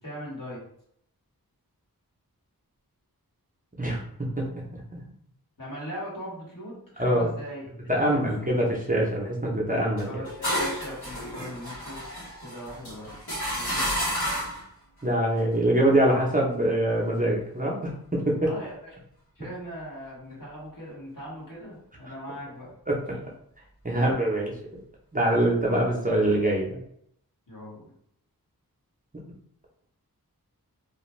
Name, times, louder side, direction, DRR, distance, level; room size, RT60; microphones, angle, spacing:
voice 1, 0.0-0.6 5.6-8.5 10.0-12.0 12.4-13.1 13.5-14.1 18.4-18.9 19.3-22.7 23.9-24.0 27.5-27.9, equal, 60° left, -6 dB, 1.4 m, -39 dB
voice 2, 4.4-5.0 7.0-7.3 7.9-10.2 13.5-13.7 15.0-18.5 23.1-23.2 23.8-24.5 25.1-26.8, right 1 dB, 20° right, -3 dB, 0.6 m, -24 dB
sound 1, 10.0-14.7, equal, 85° left, 1.3 m, -31 dB
2.5 x 2.2 x 3.1 m, 0.71 s
wide cardioid pair, 50°, 37 cm